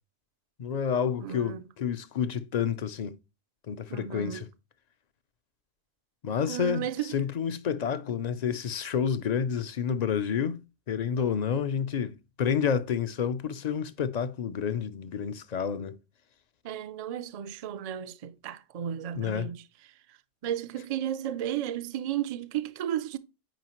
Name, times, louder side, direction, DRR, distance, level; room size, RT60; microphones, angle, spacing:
voice 1, 0.6-3.2 3.7-4.5 6.2-10.6 10.9-16.0 19.2-19.5, left 7 dB, 50° left, 0.6 m, -29 dB
voice 2, 1.2-1.7 3.9-4.5 6.4-7.1 16.6-19.6 20.4-23.2, right 10 dB, 50° right, 0.5 m, -34 dB
9.1 x 4.9 x 3.0 m
omnidirectional pair, 1.1 m